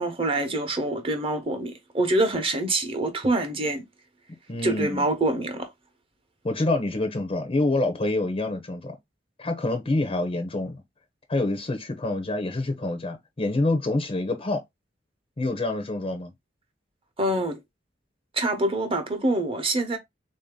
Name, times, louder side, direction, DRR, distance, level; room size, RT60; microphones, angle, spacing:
voice 1, 0.0-3.8 4.6-5.7 17.2-17.6 18.3-20.0, right 2 dB, 30° right, 0.9 m, -25 dB
voice 2, 4.5-5.1 6.4-9.0 9.4-10.8 11.3-14.6 15.4-16.3, left 2 dB, 30° left, 0.6 m, -26 dB
3.7 x 2.7 x 3.6 m
head